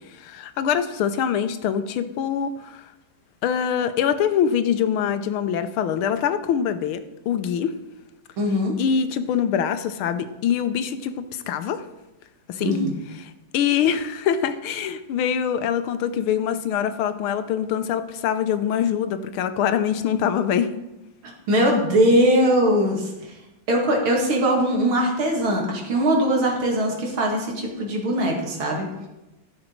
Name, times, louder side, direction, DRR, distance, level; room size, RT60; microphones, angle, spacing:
voice 1, 0.1-2.9 3.4-7.7 8.8-11.8 12.5-12.7 13.5-20.7, left 8 dB, 85° left, 10 dB, 1.6 m, -24 dB
voice 2, 8.4-8.7 12.6-12.9 21.5-23.4 23.7-29.1, equal, 75° right, -1 dB, 3.0 m, -21 dB
14.5 x 6.5 x 4.5 m, 0.97 s
omnidirectional pair, 2.3 m